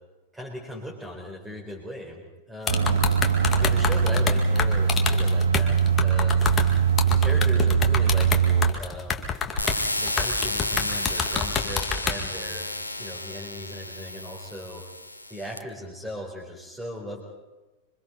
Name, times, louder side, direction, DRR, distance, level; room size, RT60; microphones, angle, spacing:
voice 1, 0.3-3.0 3.5-6.5 7.1-9.3 9.9-12.7 13.0-14.9 15.3-17.2, equal, 10° right, -3 dB, 4.5 m, -38 dB
sound 1, 2.7-9.8 10.1-12.2, left 6 dB, 20° left, 2.1 m, -27 dB
sound 2, 2.7-8.7, right 6 dB, 70° right, 0.9 m, -21 dB
sound 3, 9.6-15.6, left 1 dB, 85° left, 1.3 m, -31 dB
26.5 x 25.0 x 4.1 m, 1.2 s
figure-of-eight pair, 90°, 0 cm